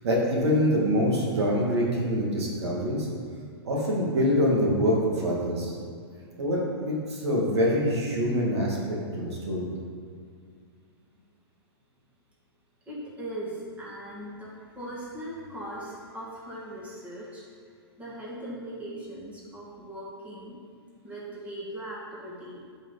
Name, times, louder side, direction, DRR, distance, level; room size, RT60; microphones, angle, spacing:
voice 1, 0.0-3.1 3.6-5.7 6.4-9.7, equal, 85° right, -3 dB, 2.4 m, -25 dB
voice 2, 12.9-17.4 18.0-20.5 21.0-22.6, right 1 dB, 10° right, -6 dB, 2.3 m, -39 dB
10.5 x 5.4 x 4.2 m, 2.2 s
hypercardioid pair, 135°, 14 cm